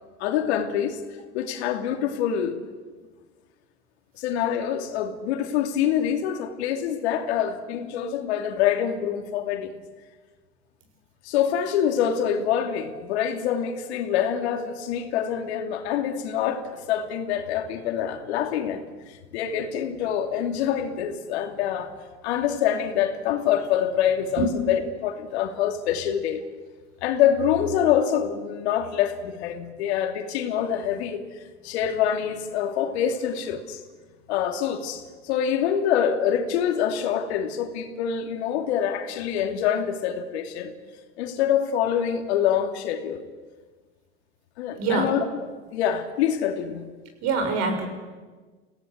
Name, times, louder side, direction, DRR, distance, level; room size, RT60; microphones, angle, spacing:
voice 1, 0.2-1.0 1.3-2.6 4.2-9.7 11.2-21.9 22.2-26.4 27.0-31.2 31.6-33.8 34.3-40.7 41.2-43.2 44.6-45.2 45.7-46.9, left 9 dB, 70° left, 5 dB, 3.1 m, -25 dB
voice 2, 44.8-45.1 47.2-47.9, right 4 dB, 50° right, 5 dB, 6.8 m, -24 dB
28.5 x 17.5 x 8.2 m, 1.4 s
hypercardioid pair, 95°, 34 cm